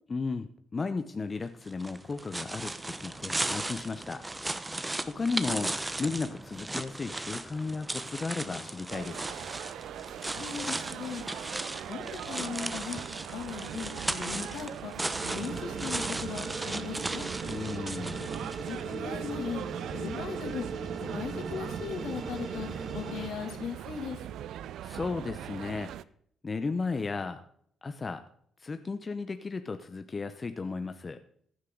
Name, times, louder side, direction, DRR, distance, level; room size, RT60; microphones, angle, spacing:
voice 1, 0.1-4.2 5.1-9.3 17.4-18.3 24.8-26.0 26.4-27.4 27.8-28.2 28.6-31.2, left 4 dB, 30° left, 9 dB, 0.8 m, -34 dB
sound 1, 1.7-18.9, right 2 dB, 15° right, 0.9 m, -36 dB
sound 2, 8.9-26.0, right 11 dB, 80° right, 0.4 m, -41 dB
voice 2, 10.4-11.3 11.9-13.0 13.3-14.9 15.2-17.3 18.6-20.7 21.0-24.2, left 7 dB, 75° left, 4 dB, 2.5 m, -38 dB
sound 3, 15.2-23.3, right 4 dB, 55° right, 1.9 m, -38 dB
15.5 x 9.6 x 3.9 m, 0.64 s
cardioid pair, 90°, 0 cm